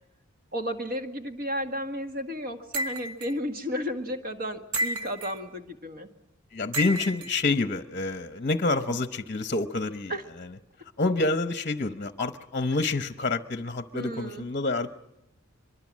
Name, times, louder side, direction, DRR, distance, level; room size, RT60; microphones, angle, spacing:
voice 1, 0.5-6.1 10.1-10.2 13.9-14.5, equal, 45° right, 6 dB, 1.8 m, -33 dB
sound 1, 2.7-3.3 4.7-5.4 6.7-7.3, right 1 dB, 75° right, 1.2 m, -31 dB
voice 2, 6.5-10.5 11.0-14.9, left 3 dB, 35° left, 10 dB, 0.9 m, -28 dB
23.5 x 23.5 x 7.5 m, 0.86 s
head